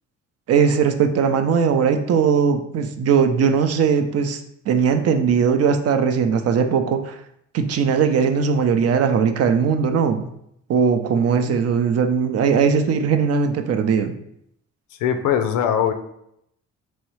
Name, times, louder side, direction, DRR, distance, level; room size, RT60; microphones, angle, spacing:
voice 1, 0.5-4.4 4.7-7.2 7.5-10.3 10.7-14.2, right 6 dB, 55° right, 7 dB, 0.5 m, -19 dB
voice 2, 14.9-15.9, left 8 dB, 90° left, 7 dB, 0.5 m, -21 dB
3.5 x 3.1 x 3.1 m, 0.75 s
cardioid pair, 90°, 30 cm